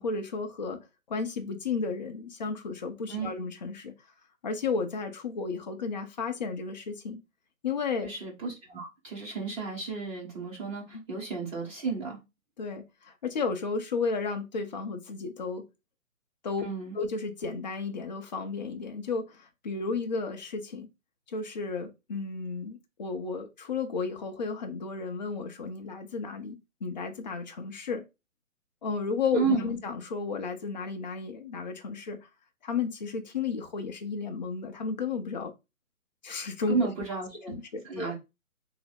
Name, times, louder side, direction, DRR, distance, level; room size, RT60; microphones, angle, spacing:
voice 1, 0.0-3.9 4.4-7.2 7.6-8.1 10.9-11.0 12.6-15.6 16.4-16.6 16.9-20.9 21.3-28.0 28.8-32.2 32.6-35.5 36.2-36.8 37.5-38.1, left 4 dB, 35° left, 0.5 m, -33 dB
voice 2, 8.0-12.2 16.6-17.0 29.3-29.7 36.7-37.6 37.8-38.1, right 5 dB, 15° right, 1.2 m, -32 dB
3.2 x 2.0 x 4.1 m
figure-of-eight pair, 140°, 42 cm